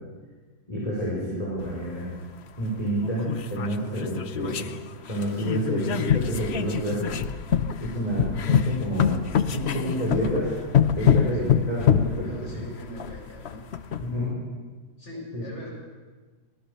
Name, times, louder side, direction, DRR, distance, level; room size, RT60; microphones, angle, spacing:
voice 1, 0.7-2.1 2.6-4.7 5.1-7.2 7.8-9.2 9.5-10.6 11.0-12.6 14.0-14.4 15.3-15.4, equal, 20° left, -5 dB, 5.3 m, -29 dB
sound 1, 1.6-1.7 2.6-2.7 3.0-4.8 5.1-14.1, left 8 dB, 50° left, 0.8 m, -25 dB
voice 2, 12.2-13.6 15.0-15.7, equal, 35° left, -3 dB, 7.2 m, -41 dB
24.5 x 18.5 x 6.9 m, 1.4 s
omnidirectional pair, 2.0 m